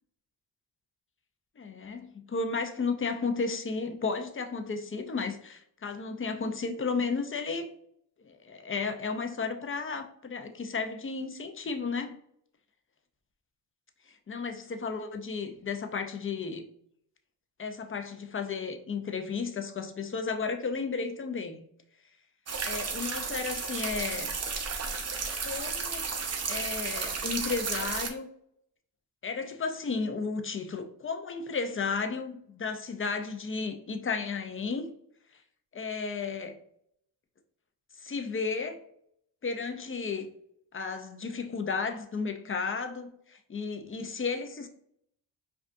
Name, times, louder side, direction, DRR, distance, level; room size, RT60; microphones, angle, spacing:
voice 1, 1.6-7.7 8.2-12.2 14.1-16.6 17.6-21.7 22.6-24.4 25.4-26.1 26.5-28.3 29.2-34.9 35.7-36.6 38.0-38.8 39.4-40.3 40.7-44.7, left 4 dB, 30° left, 0.6 m, -33 dB
sound 1, 22.5-28.1, right 5 dB, 35° right, 0.7 m, -33 dB
5.1 x 2.5 x 2.6 m
cardioid pair, 75°, 44 cm